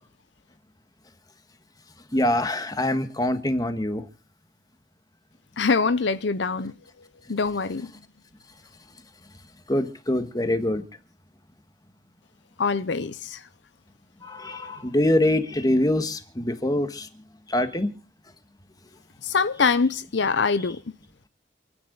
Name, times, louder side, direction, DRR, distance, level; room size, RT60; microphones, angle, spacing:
voice 1, 2.1-4.0 9.7-10.8 14.2-17.1 17.5-17.9, left 1 dB, 20° left, 1.5 m, -24 dB
voice 2, 5.6-6.7 7.3-7.9 12.6-13.4 19.2-20.8, left 4 dB, 75° left, 0.6 m, -24 dB
28.5 x 9.6 x 3.9 m
head